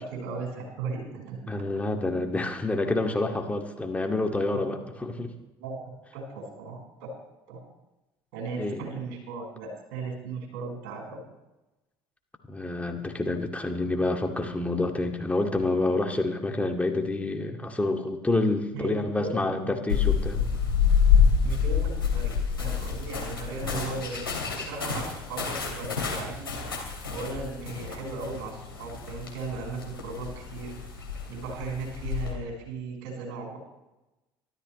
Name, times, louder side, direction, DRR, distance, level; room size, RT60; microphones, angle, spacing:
voice 1, 0.0-1.4 4.5-4.7 5.6-7.1 7.5-7.6 8.3-11.2 18.7-19.3 21.4-24.3 24.5-26.5 27.1-30.8 31.3-33.6, right 4 dB, 65° right, 0 dB, 5.0 m, -37 dB
voice 2, 1.5-5.3 8.6-8.8 12.5-20.5 23.6-23.9, left 2 dB, 10° left, 3 dB, 2.3 m, -28 dB
sound 1, 19.9-32.3, left 6 dB, 90° left, 2.9 m, -27 dB
24.5 x 13.0 x 3.2 m, 1.0 s
figure-of-eight pair, 60°, 12 cm